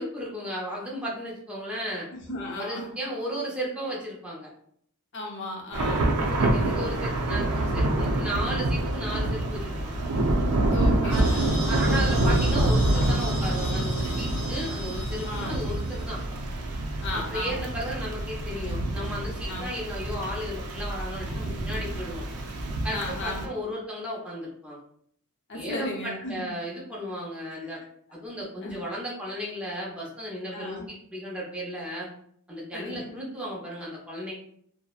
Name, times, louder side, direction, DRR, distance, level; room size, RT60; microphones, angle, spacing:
voice 1, 0.0-2.1 2.6-4.5 6.3-10.1 11.0-16.2 17.1-22.2 22.8-24.8 25.5-27.8 28.1-32.1 32.5-34.3, equal, 5° right, -5 dB, 0.6 m, -35 dB
voice 2, 2.1-2.9 5.1-6.2 6.5-6.9 10.7-11.4 15.2-15.7 17.0-17.6 19.4-19.7 22.9-23.5 25.5-26.5 27.7-27.8 28.6-28.8 30.5-30.9 32.7-33.2, left 2 dB, 55° left, -1 dB, 0.7 m, -35 dB
Thunder / Rain, 5.7-23.4, right 1 dB, 90° right, 0.4 m, -26 dB
sound 1, 11.1-16.4, equal, 30° right, 1.0 m, -38 dB
2.6 x 2.0 x 2.3 m, 0.66 s
head